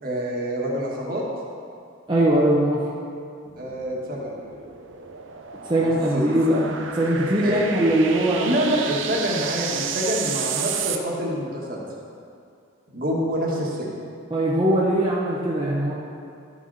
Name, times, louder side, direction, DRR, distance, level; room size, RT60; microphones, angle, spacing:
voice 1, 0.0-1.2 3.5-4.4 5.8-6.2 7.4-7.6 8.4-11.8 12.9-13.9, equal, 45° right, -3 dB, 1.6 m, -26 dB
voice 2, 2.1-2.8 5.6-8.6 14.3-16.0, right 1 dB, 25° right, -7 dB, 1.0 m, -21 dB
sound 1, 3.5-11.0, right 8 dB, 65° right, 0.6 m, -32 dB
12.0 x 6.6 x 4.1 m, 2.4 s
head